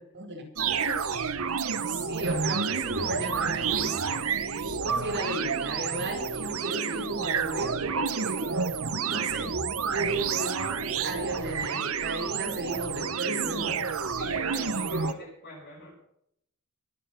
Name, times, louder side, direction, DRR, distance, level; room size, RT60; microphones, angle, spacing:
voice 1, 0.1-1.0 1.8-8.5 9.0-9.6 9.8-13.9, right 1 dB, 50° right, 1 dB, 4.9 m, -34 dB
sound 1, 0.6-15.1, right 6 dB, 65° right, 1.0 m, -30 dB
voice 2, 14.2-15.9, left 1 dB, 50° left, -4 dB, 5.7 m, -42 dB
23.5 x 9.1 x 5.8 m, 0.73 s
head